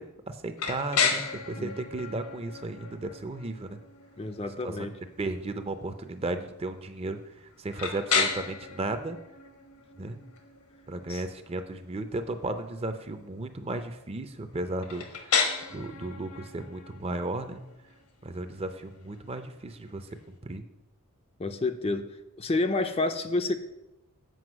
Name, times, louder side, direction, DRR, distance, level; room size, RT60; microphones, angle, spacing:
voice 1, 0.0-3.8 4.6-4.9 5.2-7.2 7.6-9.2 10.0-10.2 10.9-15.4 15.7-17.6 18.2-20.2 20.4-20.6, right 2 dB, 25° right, 9 dB, 0.5 m, -35 dB
sound 1, 0.6-20.3, left 5 dB, 80° left, 1.2 m, -34 dB
voice 2, 4.2-4.9 11.1-11.2 21.4-22.1 22.4-23.6, left 2 dB, 25° left, 8 dB, 0.4 m, -29 dB
7.8 x 5.2 x 6.2 m, 0.94 s
head